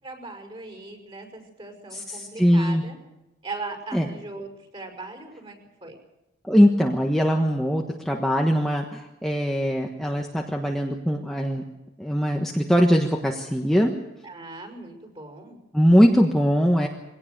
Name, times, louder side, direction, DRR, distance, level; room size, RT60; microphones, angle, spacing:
voice 1, 0.0-3.0 3.4-5.9 14.2-15.6, right 3 dB, 30° right, 4 dB, 5.6 m, -39 dB
voice 2, 1.9-2.8 3.9-4.1 6.5-11.6 12.0-13.9 15.7-16.9, equal, ahead, 0 dB, 1.4 m, -21 dB
23.0 x 18.0 x 6.7 m, 0.95 s
head